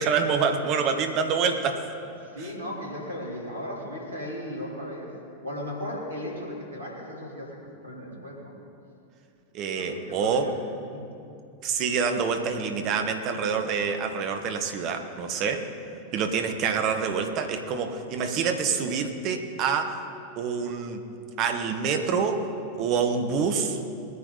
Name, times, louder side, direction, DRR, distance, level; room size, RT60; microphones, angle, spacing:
voice 1, 0.0-1.8 2.4-2.5 9.5-10.6 11.6-15.7 16.1-20.0 20.4-21.1 21.4-22.5 22.7-23.8, right 5 dB, 40° right, 6 dB, 1.3 m, -26 dB
voice 2, 2.2-5.1 5.4-7.6 7.8-8.5 9.7-10.5 10.9-11.1, left 1 dB, 75° right, -4 dB, 3.7 m, -36 dB
20.5 x 9.8 x 4.1 m, 2.6 s
figure-of-eight pair, 90°, 0 cm